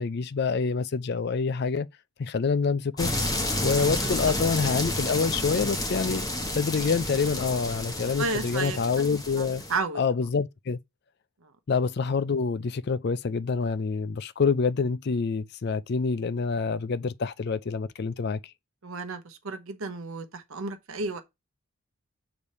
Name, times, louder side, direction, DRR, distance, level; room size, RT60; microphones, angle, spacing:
voice 1, 0.0-1.9 2.2-3.1 3.6-6.2 6.5-9.6 10.0-10.8 11.7-18.5, left 5 dB, 45° left, 0.4 m, -27 dB
sound 1, 3.0-9.8, left 1 dB, 15° left, 1.0 m, -30 dB
voice 2, 8.2-8.8 9.7-10.0 18.8-21.2, right 3 dB, 70° right, 0.9 m, -32 dB
7.0 x 3.3 x 5.4 m
head